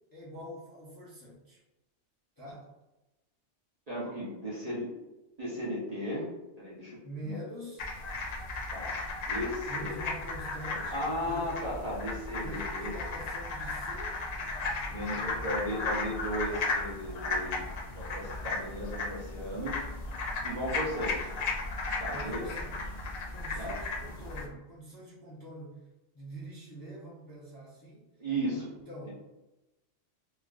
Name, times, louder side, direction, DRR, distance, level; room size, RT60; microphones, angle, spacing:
voice 1, 0.1-1.6 2.4-2.7 7.0-7.9 9.7-11.5 12.4-14.1 22.0-22.9 23.3-25.8 26.1-28.0 28.5-29.1, right 1 dB, 20° left, -9 dB, 0.6 m, -45 dB
voice 2, 3.9-4.9 5.4-6.3 6.6-7.3 8.7-10.0 10.9-12.9 14.9-17.6 17.9-19.8 20.4-21.3 22.0-22.5 23.6-23.8 28.2-28.7 29.0-29.1, equal, 40° right, -7 dB, 0.7 m, -35 dB
sound 1, 7.8-24.5, left 3 dB, 80° left, 0.3 m, -35 dB
3.2 x 2.4 x 2.4 m, 1.0 s
omnidirectional pair, 1.3 m